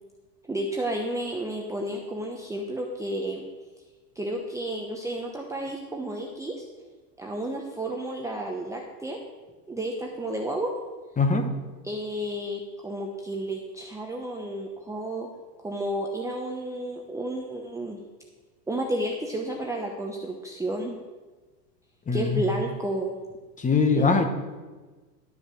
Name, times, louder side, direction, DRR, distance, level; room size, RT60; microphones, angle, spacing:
voice 1, 0.4-3.4 4.2-6.7 7.2-9.2 9.7-10.7 11.8-15.3 15.6-18.0 18.7-21.0 22.1-23.2 24.0-24.1, right 1 dB, 5° right, 0 dB, 0.8 m, -31 dB
voice 2, 11.2-11.5 22.1-22.4 23.6-24.3, left 4 dB, 15° left, 6 dB, 1.1 m, -22 dB
12.0 x 5.2 x 6.3 m, 1.3 s
hypercardioid pair, 115°, 50 cm